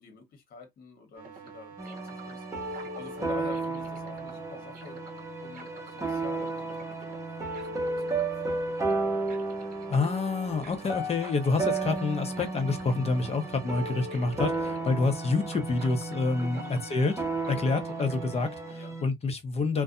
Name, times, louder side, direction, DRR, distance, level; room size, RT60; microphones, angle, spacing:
voice 1, 0.0-5.0 5.4-7.2 7.6-8.6 10.6-10.8 16.5-16.9 18.7-19.0, left 5 dB, 50° left, 1.2 m, -48 dB
sound 1, 1.1-18.7, right 5 dB, 50° right, 0.8 m, -47 dB
sound 2, 1.8-19.0, right 3 dB, 15° right, 0.8 m, -33 dB
voice 2, 9.9-17.1 17.5-18.5 19.0-19.8, left 3 dB, 30° left, 0.8 m, -27 dB
2.6 x 2.2 x 2.5 m
supercardioid pair, 95°, 20 cm